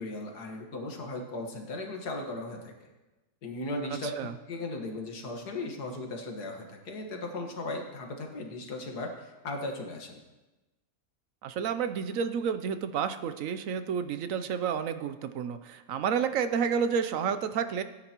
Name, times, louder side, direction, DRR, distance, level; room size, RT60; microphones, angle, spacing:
voice 1, 0.0-2.9 3.4-4.1 4.5-10.2, left 2 dB, 80° left, 2 dB, 2.1 m, -37 dB
voice 2, 4.0-4.3 11.4-17.8, right 7 dB, 65° right, 10 dB, 1.0 m, -30 dB
18.0 x 10.0 x 3.0 m, 1.1 s
omnidirectional pair, 1.7 m